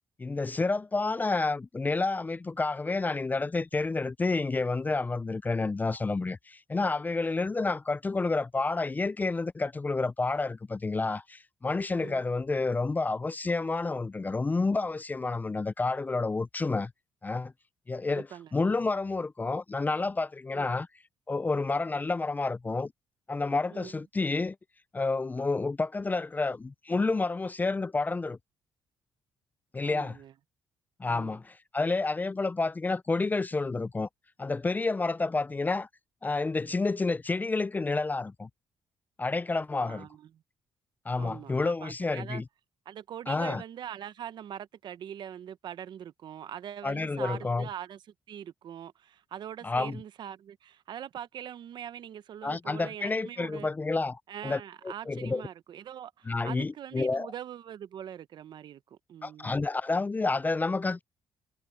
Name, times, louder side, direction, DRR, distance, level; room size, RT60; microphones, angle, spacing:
voice 1, 0.2-16.9 17.2-17.5 17.9-18.3 18.5-20.9 21.3-22.9 23.3-24.6 24.9-28.4 29.7-30.2 31.0-34.1 34.4-35.9 36.2-38.5 39.2-40.1 41.1-42.4 43.3-43.6 46.8-47.7 49.6-50.0 52.4-54.6 54.8-55.4 56.3-57.3 59.2-61.0, left 3 dB, 20° left, 0.4 m, -29 dB
voice 2, 18.0-18.5 20.5-20.8 23.7-23.9 29.8-30.3 31.1-31.4 39.8-40.4 41.2-42.4 42.9-48.0 48.3-53.7 54.3-59.6, right 10 dB, 65° right, 0.8 m, -42 dB
cardioid pair, 85°, 8 cm